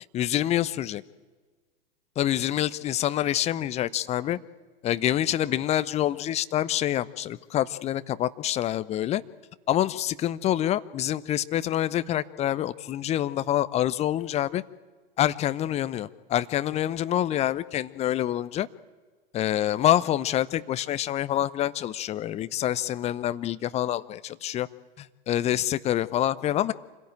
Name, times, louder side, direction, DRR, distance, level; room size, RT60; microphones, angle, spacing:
voice 1, 0.1-1.0 2.2-4.4 4.8-9.2 9.7-14.6 15.2-18.7 19.3-24.7 25.0-26.7, left 12 dB, 20° left, 15 dB, 0.7 m, -26 dB
26.0 x 16.5 x 8.8 m, 1.4 s
figure-of-eight pair, 95°, 29 cm